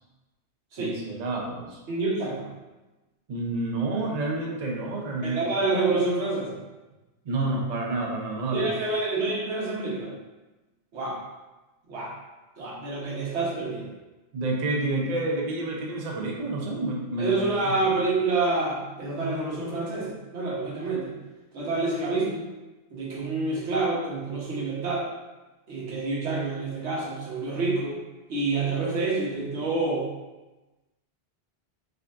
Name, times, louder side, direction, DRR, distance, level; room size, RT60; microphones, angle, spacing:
voice 1, 0.8-1.8 3.3-5.4 7.3-8.7 14.3-17.4 17.7-17.8, right 2 dB, 45° right, -1 dB, 0.6 m, -29 dB
voice 2, 1.9-2.5 5.2-6.6 8.5-10.1 10.9-11.2 11.9-12.1 12.6-13.9 17.2-21.2 21.5-22.4 22.9-25.1 25.7-28.0 28.3-30.1, right 3 dB, 80° right, -4 dB, 1.2 m, -27 dB
5.0 x 2.4 x 2.4 m, 1.1 s
omnidirectional pair, 1.1 m